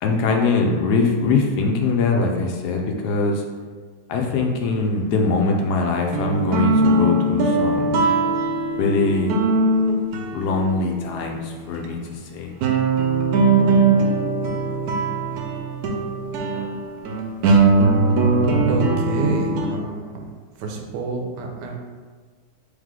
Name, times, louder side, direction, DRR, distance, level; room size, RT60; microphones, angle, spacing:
voice 1, 0.0-3.4 4.1-7.9 8.8-9.3 10.3-12.5, left 3 dB, 75° left, 2 dB, 1.1 m, -22 dB
sound 1, 5.8-11.1 11.8-11.9 12.6-19.7, right 3 dB, 70° right, 1.0 m, -20 dB
voice 2, 18.7-20.2 20.6-21.8, right 3 dB, 85° right, 2 dB, 1.2 m, -27 dB
3.5 x 3.3 x 3.7 m, 1.5 s
omnidirectional pair, 1.8 m